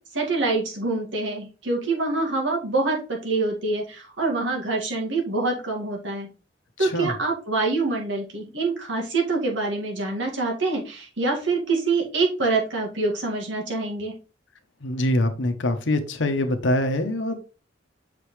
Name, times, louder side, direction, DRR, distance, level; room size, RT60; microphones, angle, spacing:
voice 1, 0.1-6.3 6.8-14.1, right 3 dB, 85° right, 0 dB, 2.1 m, -25 dB
voice 2, 6.8-7.1 14.8-17.4, left 1 dB, 80° left, 6 dB, 1.0 m, -24 dB
6.8 x 5.1 x 3.2 m, 0.33 s
head